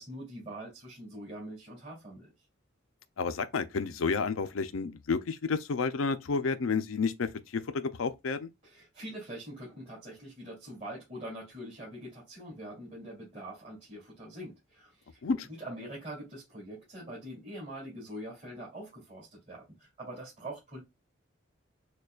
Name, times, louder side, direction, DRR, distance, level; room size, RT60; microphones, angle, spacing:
voice 1, 0.0-2.3 8.6-15.2 15.6-20.8, right 1 dB, 35° right, 2.6 m, -44 dB
voice 2, 3.2-8.5 15.2-15.5, left 4 dB, 80° left, 0.5 m, -31 dB
6.5 x 2.3 x 2.3 m
head